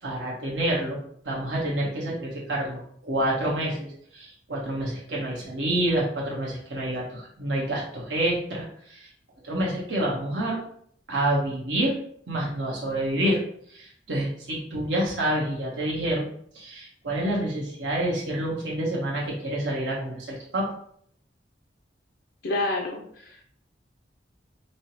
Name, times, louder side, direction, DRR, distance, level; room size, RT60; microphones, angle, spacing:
voice 1, 0.0-1.0 1.2-3.9 4.1-9.1 9.4-10.6 11.1-11.9 12.3-13.4 13.7-16.3 16.5-20.7, right 1 dB, 85° right, -5 dB, 1.1 m, -28 dB
voice 2, 22.4-23.4, left 2 dB, 75° left, 0 dB, 0.6 m, -29 dB
5.3 x 2.2 x 2.9 m, 0.65 s
head